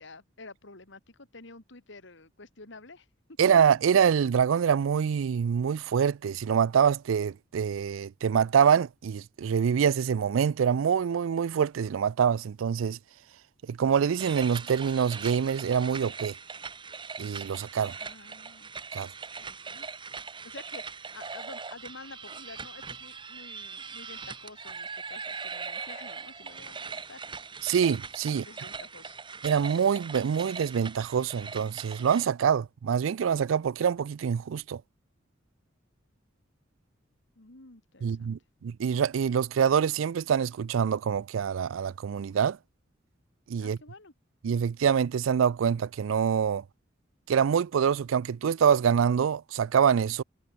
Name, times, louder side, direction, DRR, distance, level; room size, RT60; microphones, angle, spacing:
voice 1, 0.0-3.1 17.9-18.7 19.4-19.9 20.4-27.2 28.3-29.2 37.4-38.3 43.6-44.1, left 3 dB, 65° left, 2.6 m, -49 dB
voice 2, 3.4-13.0 13.7-16.3 17.2-17.9 18.9-19.1 27.6-28.4 29.4-34.8 38.0-42.6 43.5-43.8 44.4-46.6 47.3-50.2, right 7 dB, 80° right, 0.4 m, -25 dB
sound 1, 14.2-32.2, right 5 dB, 25° right, 1.4 m, -41 dB
head